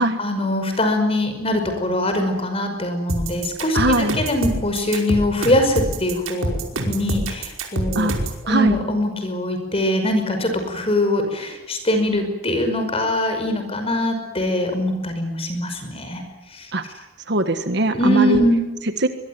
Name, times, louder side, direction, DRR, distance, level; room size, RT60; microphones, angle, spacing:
voice 1, 0.2-3.8 4.2-6.6 6.9-8.1 8.4-16.2 16.5-16.7 17.9-18.7, left 1 dB, 30° left, 6 dB, 5.5 m, -22 dB
sound 1, 3.1-8.4, right 1 dB, 85° right, 5.3 m, -25 dB
voice 2, 3.7-4.2 7.9-8.2 8.5-8.8 16.7-17.0 17.3-18.4 18.8-19.1, right 1 dB, 55° right, 8 dB, 1.6 m, -21 dB
24.0 x 22.0 x 9.6 m, 1.0 s
head